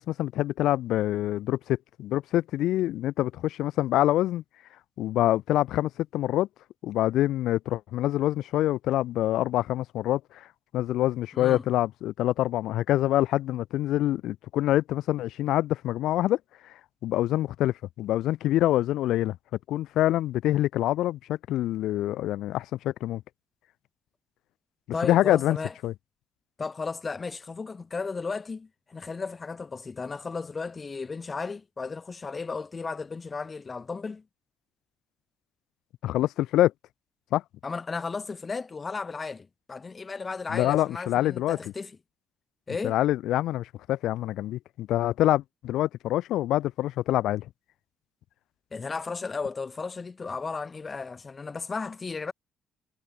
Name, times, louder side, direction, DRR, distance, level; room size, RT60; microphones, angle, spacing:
voice 1, 0.0-4.4 5.0-6.5 6.8-10.5 10.7-16.4 17.0-19.4 19.7-23.2 25.0-25.6 25.8-25.9 36.0-36.7 37.3-37.4 40.5-41.6 42.8-47.5, left 14 dB, 85° left, 5.7 m, -26 dB
voice 2, 11.3-11.6 24.9-25.7 26.6-34.2 37.6-41.9 42.7-43.0 48.7-52.3, left 4 dB, 30° left, 6.7 m, -34 dB
cardioid pair, 90°, 0 cm